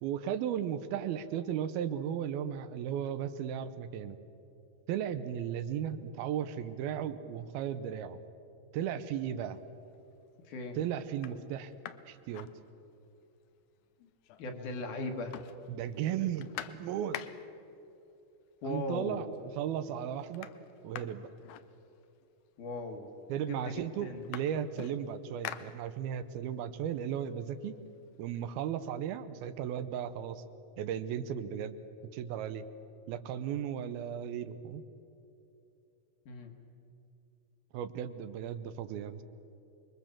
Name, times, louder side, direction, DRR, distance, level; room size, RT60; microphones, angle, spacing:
voice 1, 0.0-4.2 4.9-8.2 8.7-9.6 10.8-11.7 12.1-12.5 15.7-17.2 18.6-19.3 19.5-20.5 20.8-21.3 23.3-27.8 28.2-30.4 30.8-31.8 32.1-32.7 33.1-34.8 37.7-39.2, right 9 dB, 80° right, 11 dB, 2.6 m, -35 dB
sound 1, 9.7-10.2 10.7-10.8 11.1-13.2 13.5-13.6 13.8-14.7 15.0-17.7 18.6-18.7 19.1-19.6 19.9-22.3 23.1-23.2 23.5-26.3 26.7-28.4, left 11 dB, 80° left, 1.8 m, -47 dB
voice 2, 10.4-10.8 14.0-14.1 14.4-15.4 18.6-19.2 22.6-23.2 23.5-24.2 36.3-36.5, left 2 dB, 60° left, 3 dB, 3.0 m, -38 dB
27.5 x 22.0 x 7.4 m, 2.8 s
omnidirectional pair, 4.4 m